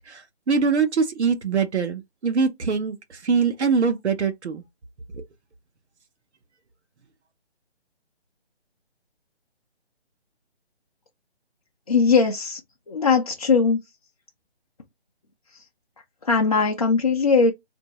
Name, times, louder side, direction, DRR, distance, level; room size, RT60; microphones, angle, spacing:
voice 1, 0.0-4.6 5.1-5.2, right 5 dB, 90° right, 0.9 m, -23 dB
voice 2, 11.9-12.6 12.9-13.8 15.5-15.6 16.2-17.5, left 4 dB, 35° left, 0.5 m, -20 dB
4.4 x 2.6 x 2.9 m
hypercardioid pair, 165°, 33 cm